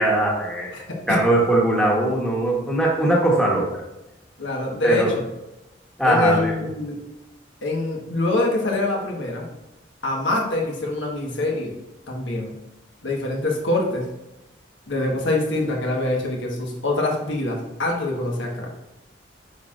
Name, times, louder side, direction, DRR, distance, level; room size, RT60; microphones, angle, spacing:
voice 1, 0.0-0.7 1.1-3.7 4.8-5.1 6.0-6.5, right 1 dB, 5° left, -4 dB, 1.2 m, -20 dB
voice 2, 0.7-1.2 4.4-5.2 6.0-7.1 7.6-9.5 10.0-11.7 12.1-12.6 13.0-14.1 14.9-18.7, left 2 dB, 80° left, -1 dB, 1.4 m, -25 dB
9.2 x 4.4 x 2.5 m, 0.95 s
head